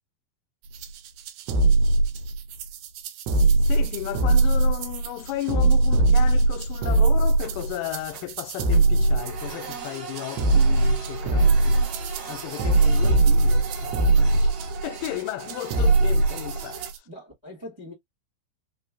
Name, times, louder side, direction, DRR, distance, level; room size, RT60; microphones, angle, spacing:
sound 1, 0.7-17.0, right 2 dB, 90° right, 2.5 m, -21 dB
voice 1, 3.3-11.8 12.3-14.6 14.8-17.1, left 15 dB, 80° left, 2.1 m, -34 dB
Printer, 5.3-5.9 6.3-6.4 6.9-8.4 8.7-16.9, right 6 dB, 55° right, 1.3 m, -39 dB
voice 2, 12.5-13.0 14.3-14.4 17.0-17.9, left 1 dB, 20° right, 0.8 m, -44 dB
5.5 x 2.2 x 2.3 m
omnidirectional pair, 4.1 m